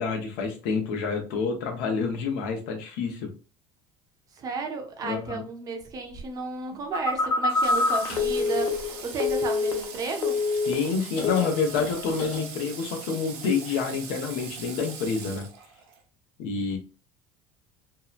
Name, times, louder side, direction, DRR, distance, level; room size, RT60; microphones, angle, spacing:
voice 1, 0.0-3.3 5.0-5.4 10.7-15.5 16.4-16.8, left 5 dB, 75° left, 0.8 m, -28 dB
voice 2, 4.4-10.4, right 3 dB, 30° right, 0.5 m, -33 dB
sound 1, 6.1-6.2 7.9-9.8 10.5-10.6 11.1-12.5, left 3 dB, 55° left, 1.2 m, -39 dB
Telephone, 6.9-10.0 10.2-10.9 11.2-11.6, left 3 dB, 25° left, 0.5 m, -26 dB
Water / Water tap faucet, 7.5-16.0, right 6 dB, 80° right, 0.8 m, -41 dB
2.8 x 2.1 x 2.4 m
cardioid pair, 155°, 12 cm